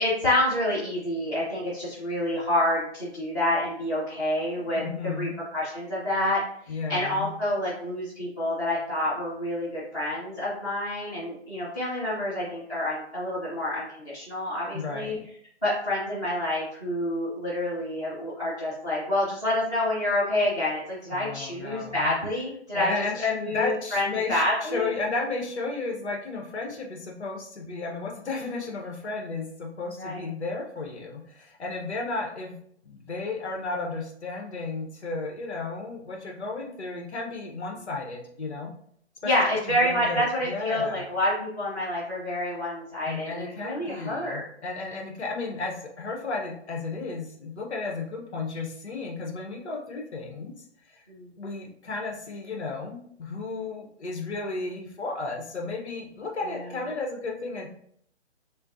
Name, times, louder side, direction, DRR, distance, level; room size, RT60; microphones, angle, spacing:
voice 1, 0.0-6.4 6.9-15.2 15.6-22.9 23.4-24.9 30.0-30.2 39.2-44.4 51.1-51.3, left 1 dB, 5° left, -19 dB, 0.7 m, -28 dB
voice 2, 4.5-5.4 6.7-7.3 14.7-15.2 21.1-22.1 22.7-32.6 32.8-38.7 39.5-41.0 43.1-50.5 50.9-51.0 51.4-57.7, left 3 dB, 70° left, 0 dB, 1.2 m, -33 dB
6.6 x 2.2 x 2.7 m, 0.66 s
hypercardioid pair, 175°, 35 cm